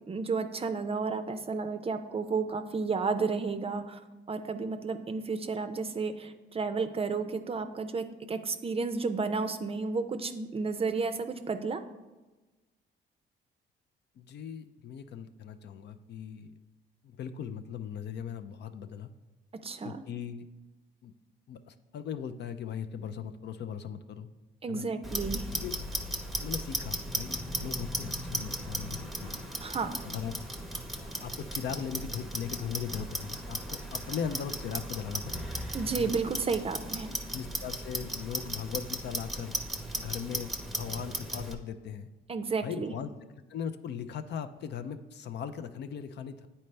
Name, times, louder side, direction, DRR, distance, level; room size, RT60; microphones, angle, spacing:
voice 1, 0.1-4.0 4.3-11.8 19.6-20.0 24.6-25.6 29.6-30.0 35.7-37.2 42.3-42.9, right 4 dB, 30° right, 9 dB, 0.5 m, -32 dB
voice 2, 14.2-16.5 17.0-19.1 19.8-20.5 21.0-21.1 21.5-24.3 24.7-24.9 25.5-25.7 26.4-29.3 30.0-30.3 31.0-35.5 36.0-36.1 37.3-39.6 39.9-40.5 40.8-42.1 42.6-43.1 43.5-46.5, left 8 dB, 60° left, 10 dB, 0.4 m, -39 dB
Clock, 25.0-41.5, right 1 dB, ahead, 0.8 m, -36 dB
9.0 x 4.3 x 3.3 m, 1.2 s
cardioid pair, 90°, 20 cm